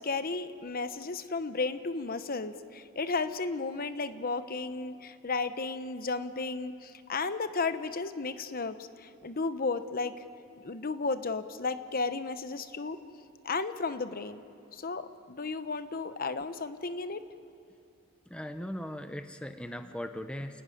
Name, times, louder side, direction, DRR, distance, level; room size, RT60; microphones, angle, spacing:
voice 1, 0.0-10.2 10.6-13.0 13.4-14.4 14.7-17.2, left 3 dB, 45° left, 11 dB, 0.9 m, -34 dB
voice 2, 18.3-20.6, equal, 5° left, 8 dB, 0.7 m, -39 dB
29.0 x 16.0 x 10.0 m, 2.7 s
head